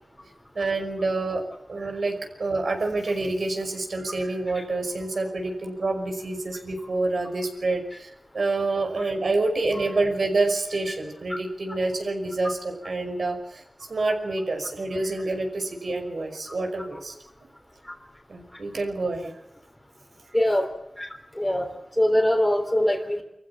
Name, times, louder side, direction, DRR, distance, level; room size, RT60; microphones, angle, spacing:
voice 1, 0.6-13.6 13.9-17.1 18.3-19.4, right 2 dB, 80° right, 3 dB, 5.6 m, -27 dB
voice 2, 20.3-20.7 21.0-21.1 21.3-21.7 22.0-23.2, left 1 dB, 15° left, 2 dB, 3.4 m, -22 dB
26.0 x 15.0 x 8.6 m, 0.85 s
wide cardioid pair, 90°, 0 cm